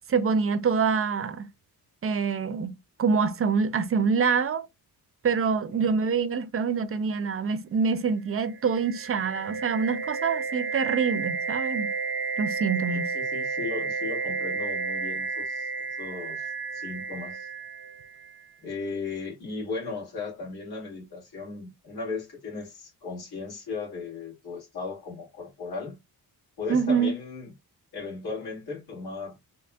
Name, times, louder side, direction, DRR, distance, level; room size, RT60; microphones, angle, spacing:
voice 1, 0.1-1.5 2.0-4.6 5.2-11.9 12.4-13.1 26.7-27.2, right 5 dB, 35° right, 0.4 m, -25 dB
sound 1, 8.5-18.3, right 4 dB, 90° right, 0.6 m, -32 dB
voice 2, 12.9-15.7 16.0-17.5 18.6-26.0 26.6-27.5 27.9-29.3, left 4 dB, 75° left, 2.5 m, -36 dB
4.1 x 3.1 x 2.2 m
wide cardioid pair, 155°, 38 cm